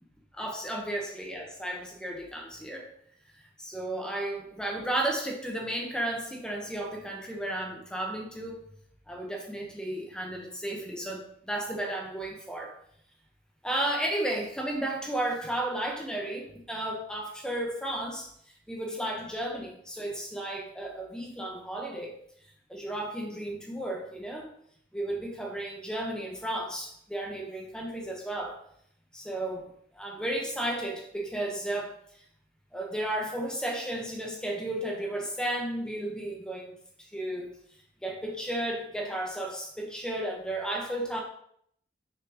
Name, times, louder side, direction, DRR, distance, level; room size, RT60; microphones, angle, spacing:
voice 1, 0.3-2.9 3.6-8.6 9.1-12.7 13.6-18.3 18.7-22.1 22.7-24.5 24.9-28.6 29.1-29.7 29.9-32.2 32.7-37.5 38.0-41.2, right 1 dB, 5° left, 0 dB, 1.1 m, -33 dB
6.6 x 5.9 x 3.1 m, 0.68 s
head